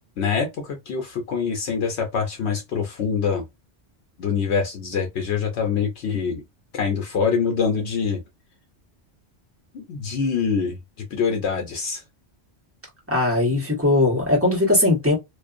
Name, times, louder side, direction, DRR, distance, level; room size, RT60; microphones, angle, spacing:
voice 1, 0.2-3.4 4.2-6.4 6.7-8.2 9.7-12.0, left 6 dB, 75° left, 0.9 m, -25 dB
voice 2, 13.1-15.2, left 2 dB, 15° right, 1.1 m, -19 dB
2.5 x 2.4 x 2.4 m
omnidirectional pair, 1.2 m